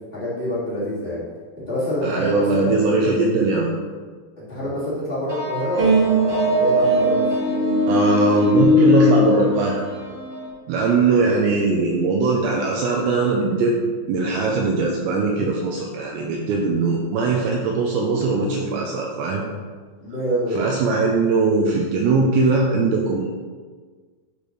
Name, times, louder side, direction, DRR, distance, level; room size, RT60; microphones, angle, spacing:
voice 1, 0.1-1.2 1.6-3.0 4.4-7.2 20.0-20.7, equal, 45° left, -12 dB, 0.7 m, -26 dB
voice 2, 2.0-3.7 7.9-9.8 10.7-13.8 14.1-19.4 20.5-23.3, right 3 dB, 80° right, -1 dB, 2.7 m, -20 dB
sound 1, 5.3-10.5, left 1 dB, 45° right, 2.0 m, -19 dB
11.0 x 5.2 x 3.2 m, 1.5 s
omnidirectional pair, 5.5 m